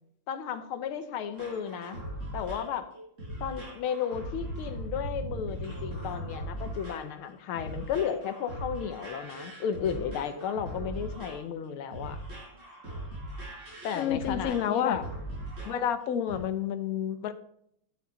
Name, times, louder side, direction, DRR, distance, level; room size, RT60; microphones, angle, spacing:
voice 1, 0.3-2.0 2.3-2.9 3.4-12.2 13.8-15.0, left 8 dB, 80° left, 9 dB, 1.8 m, -34 dB
sound 1, 1.3-15.9 16.3-16.4, right 1 dB, 35° right, 5.0 m, -39 dB
voice 2, 13.9-15.0 15.6-17.3, left 9 dB, 65° left, 11 dB, 0.9 m, -29 dB
11.0 x 7.3 x 4.0 m, 0.72 s
omnidirectional pair, 2.3 m